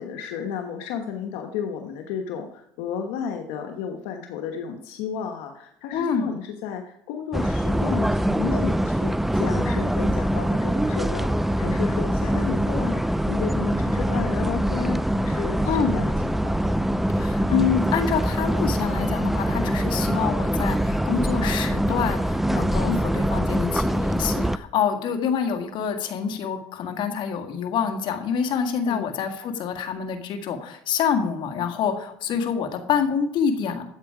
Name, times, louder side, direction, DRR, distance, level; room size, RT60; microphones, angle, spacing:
voice 1, 0.0-16.7 22.8-23.1 28.8-29.1, left 7 dB, 85° left, 4 dB, 1.1 m, -32 dB
voice 2, 5.9-6.3 15.7-16.0 17.1-33.8, left 7 dB, 60° left, 6 dB, 1.9 m, -26 dB
sound 1, 7.3-24.6, equal, ahead, 0.4 m, -24 dB
13.0 x 8.0 x 4.9 m, 0.77 s
cardioid pair, 115°, 9 cm